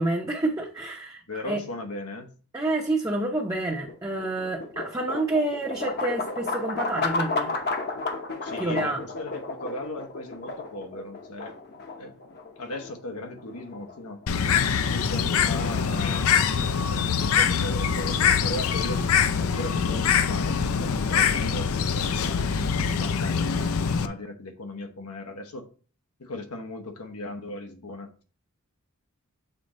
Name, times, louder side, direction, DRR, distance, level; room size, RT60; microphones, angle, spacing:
voice 1, 0.0-1.6 2.5-7.5 8.6-9.0, right 2 dB, 15° right, 0.7 m, -28 dB
voice 2, 1.3-2.3 8.4-11.6 12.0-12.2 12.6-14.2 14.6-19.1 19.4-25.7 26.2-28.1, left 2 dB, 90° left, 1.1 m, -37 dB
sound 1, 3.5-17.6, left 3 dB, 50° left, 0.9 m, -34 dB
Bird, 14.3-24.1, left 6 dB, 70° left, 0.5 m, -24 dB
6.8 x 3.8 x 4.1 m
head